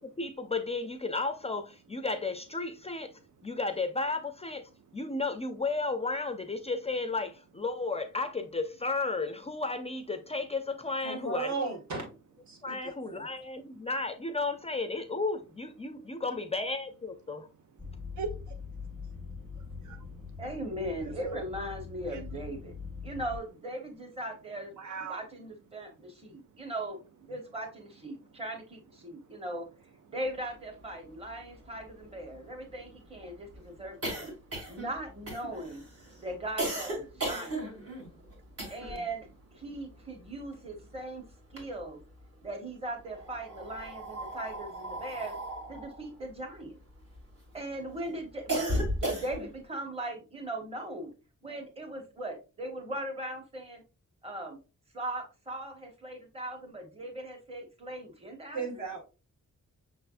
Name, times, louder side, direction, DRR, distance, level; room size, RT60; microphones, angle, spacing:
voice 1, 0.0-3.1 3.4-11.5 12.6-17.5, left 3 dB, 20° left, 0.3 m, -33 dB
voice 2, 11.0-12.1 12.5-13.3 58.5-59.0, right 4 dB, 70° right, 1.6 m, -35 dB
sound 1, 17.8-23.4, left 5 dB, 5° right, 0.7 m, -43 dB
voice 3, 17.8-18.6 18.9-19.5 19.8-20.0 21.2-21.4 22.1-22.2 24.8-25.2 26.4-26.6 29.0-29.4 33.3-33.4 34.5-34.8, right 5 dB, 90° right, 0.7 m, -43 dB
voice 4, 20.4-22.7 23.0-24.8 25.1-29.7 30.1-34.3 34.7-35.8 36.2-37.7 38.7-41.2 41.5-42.0 42.4-45.4 45.7-46.8 47.5-51.1 51.4-53.8 54.2-54.6 54.9-58.8, right 1 dB, 20° right, 1.1 m, -39 dB
sound 2, 30.9-31.0 31.2-31.3 31.6-39.1 39.4-41.0 41.3-42.3 43.0-47.5 47.9-49.6, right 1 dB, 50° right, 1.9 m, -36 dB
6.0 x 3.3 x 2.4 m
wide cardioid pair, 175°, 29 cm